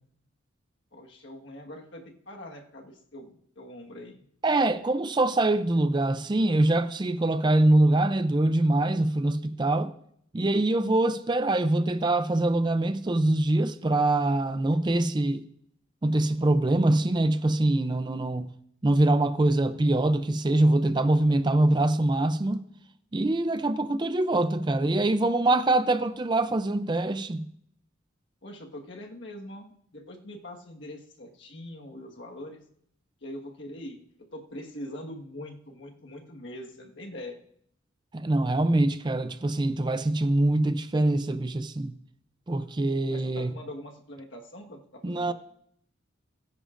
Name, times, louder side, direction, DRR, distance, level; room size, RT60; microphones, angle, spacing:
voice 1, 0.9-4.2 28.4-32.6 33.2-34.0 34.3-37.4 43.1-45.3, left 1 dB, 65° left, 1.5 m, -43 dB
voice 2, 4.4-9.9 10.3-15.4 16.0-18.5 18.8-22.7 23.1-27.5 38.1-42.0 42.5-43.5 45.0-45.3, right 2 dB, 20° right, 0.4 m, -24 dB
20.5 x 10.0 x 2.5 m
head